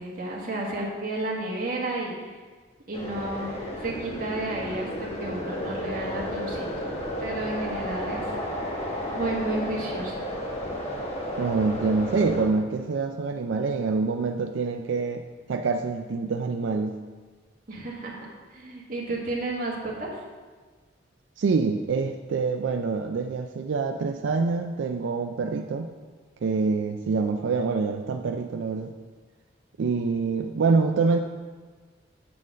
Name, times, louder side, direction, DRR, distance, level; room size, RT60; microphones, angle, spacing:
voice 1, 0.0-2.2 2.9-3.5 3.8-6.6 7.2-8.3 9.1-10.2 17.7-18.1 18.5-20.2, right 2 dB, 45° right, -3 dB, 1.5 m, -32 dB
sound 1, 2.9-12.5, equal, 35° left, 1.1 m, -32 dB
voice 2, 11.4-15.2 15.5-17.0 21.4-25.9 26.4-28.9 29.8-31.2, right 4 dB, 90° right, 5 dB, 0.4 m, -26 dB
7.6 x 3.8 x 6.2 m, 1.4 s
head